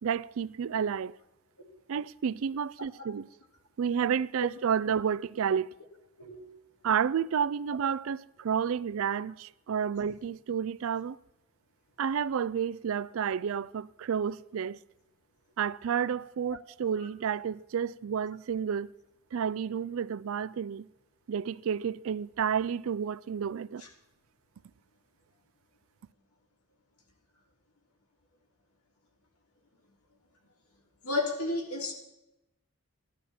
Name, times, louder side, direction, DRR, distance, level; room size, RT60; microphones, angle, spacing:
voice 1, 0.0-1.2 1.9-3.3 3.8-5.7 6.8-11.2 12.0-14.8 15.6-18.9 19.3-20.9 21.3-23.8, right 7 dB, 65° right, 0.4 m, -30 dB
voice 2, 6.2-6.5 23.8-23.9 31.0-31.9, left 2 dB, 90° left, 3.4 m, -32 dB
16.0 x 12.0 x 4.4 m
head